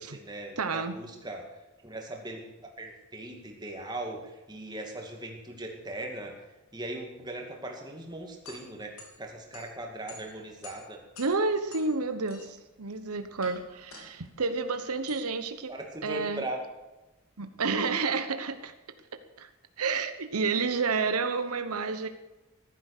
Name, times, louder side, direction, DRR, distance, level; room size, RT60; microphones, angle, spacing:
voice 1, 0.0-1.5 1.8-2.5 2.8-6.4 6.7-11.0 15.7-16.6, right 1 dB, 20° right, 1 dB, 2.2 m, -39 dB
voice 2, 0.6-1.0 11.2-15.7 16.0-16.4 17.4-18.7 19.4-19.5 19.8-22.1, right 4 dB, 90° right, 10 dB, 1.0 m, -30 dB
sound 1, 8.4-17.1, left 3 dB, 80° left, 3.9 m, -53 dB
14.5 x 12.0 x 6.6 m, 1.1 s
head